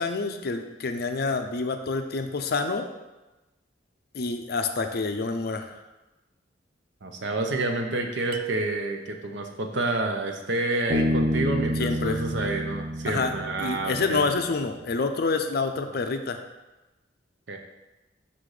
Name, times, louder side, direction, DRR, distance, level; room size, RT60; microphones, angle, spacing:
voice 1, 0.0-2.9 4.1-5.8 11.8-12.2 13.1-13.3 13.6-16.4, left 4 dB, 60° left, 7 dB, 0.5 m, -27 dB
voice 2, 7.0-14.2 17.5-17.6, right 2 dB, 75° right, 3 dB, 0.8 m, -29 dB
sound 1, 8.3-9.4, right 12 dB, 60° right, 0.3 m, -36 dB
Bass guitar, 10.9-14.4, equal, 40° right, 0.7 m, -28 dB
5.8 x 4.0 x 4.9 m, 1.1 s
head